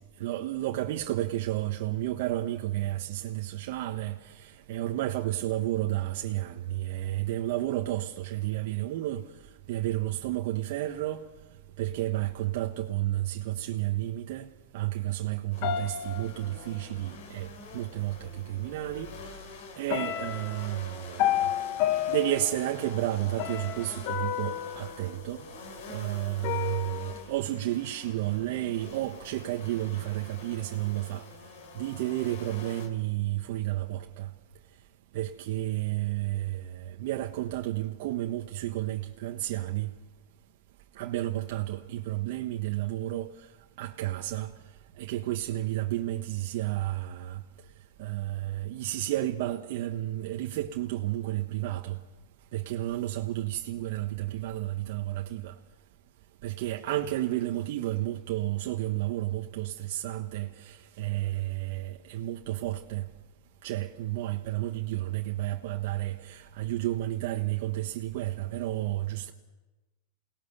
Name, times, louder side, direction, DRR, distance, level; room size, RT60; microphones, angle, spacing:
voice 1, 0.2-9.2 9.7-11.3 11.8-14.5 14.7-17.5 17.7-19.1 19.8-21.5 22.1-25.4 25.9-31.3 31.7-34.3 35.1-39.9 40.9-43.3 43.8-44.5 45.0-47.4 48.0-52.0 52.5-55.5 56.4-63.1 63.6-69.3, right 15 dB, 60° right, 1.3 m, -31 dB
sound 1, 15.5-32.9, left 3 dB, 70° left, 5.5 m, -47 dB
sound 2, 15.6-17.1 18.2-18.3 18.8-19.4 19.9-25.8 26.4-27.2, left 12 dB, 50° left, 1.1 m, -32 dB
28.5 x 19.0 x 6.8 m
hypercardioid pair, 130°, 0 cm